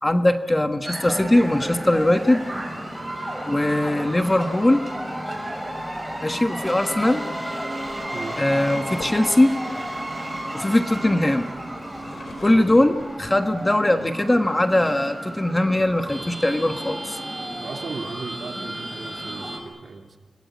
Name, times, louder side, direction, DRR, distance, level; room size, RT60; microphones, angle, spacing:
voice 1, 0.0-2.4 3.5-4.8 6.2-7.2 8.4-9.6 10.5-11.5 12.4-17.2, left 1 dB, 15° left, 6 dB, 1.3 m, -20 dB
sound 1, 0.8-19.6, right 1 dB, ahead, 6.9 m, -32 dB
sound 2, 1.6-3.2 6.2-6.5 7.5-11.2 11.7-13.8 14.4-14.5 14.8-15.4, left 2 dB, 50° left, 5.0 m, -45 dB
voice 2, 17.6-20.2, right 4 dB, 60° right, 2 dB, 3.5 m, -36 dB
28.5 x 21.0 x 9.7 m, 1.3 s
wide cardioid pair, 125°, 0 cm